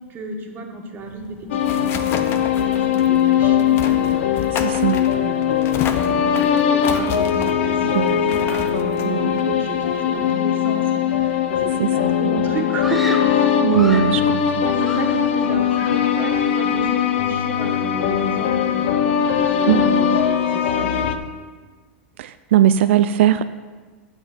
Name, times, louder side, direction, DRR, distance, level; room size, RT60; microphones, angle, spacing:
voice 1, 0.1-14.3 14.6-21.1, right 3 dB, 30° right, 2 dB, 1.6 m, -33 dB
sound 1, 1.0-10.3, left 7 dB, 35° left, 0.9 m, -32 dB
sound 2, 1.5-21.1, left 9 dB, 75° left, 0.8 m, -20 dB
voice 2, 4.6-5.0 8.0-8.2 9.1-9.3 11.8-11.9 13.6-14.4 19.7-20.2 22.2-23.4, right 11 dB, 75° right, 12 dB, 0.4 m, -18 dB
Screaming, 12.8-14.2 14.8-15.4 15.7-16.1, equal, ahead, 0.9 m, -33 dB
7.8 x 6.5 x 7.4 m, 1.4 s
hypercardioid pair, 120°, 7 cm